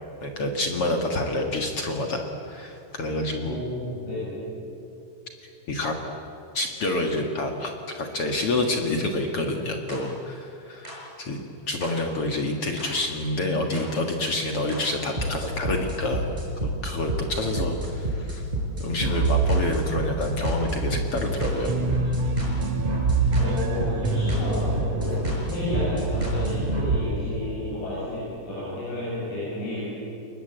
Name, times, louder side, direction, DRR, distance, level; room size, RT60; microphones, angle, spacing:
voice 1, 0.2-3.6 5.7-5.9 6.5-11.4 11.7-16.3 16.6-18.4 18.8-21.7, left 2 dB, 50° left, 3 dB, 1.9 m, -28 dB
voice 2, 3.4-4.4 23.4-29.9, left 1 dB, 80° left, -9 dB, 10.5 m, -31 dB
sound 1, 9.9-10.0 10.8-10.9 11.8-11.9 12.8-12.9 13.7-13.8 14.7-14.8 15.2-27.0, right 3 dB, 10° right, 5.1 m, -27 dB
sound 2, 21.3-27.1, right 1 dB, 70° right, 1.6 m, -30 dB
29.5 x 21.0 x 8.0 m, 2.8 s
omnidirectional pair, 4.9 m